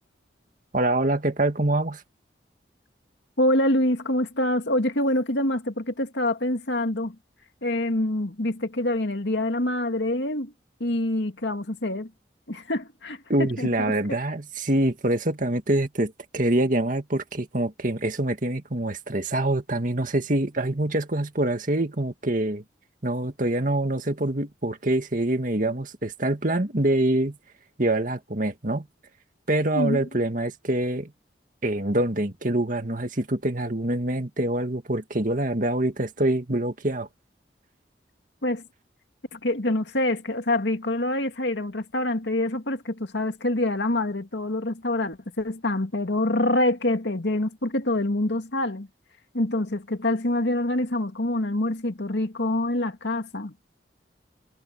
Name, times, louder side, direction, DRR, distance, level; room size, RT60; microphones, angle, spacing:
voice 1, 0.7-2.0 13.3-22.6 23.0-27.4 27.8-28.9 29.5-31.1 31.6-37.1, right 1 dB, 45° right, 2.1 m, -25 dB
voice 2, 3.4-7.2 7.6-10.5 10.8-12.1 12.5-13.9 29.7-30.0 38.4-38.6 39.3-48.9 49.3-53.5, left 1 dB, 75° left, 2.2 m, -26 dB
head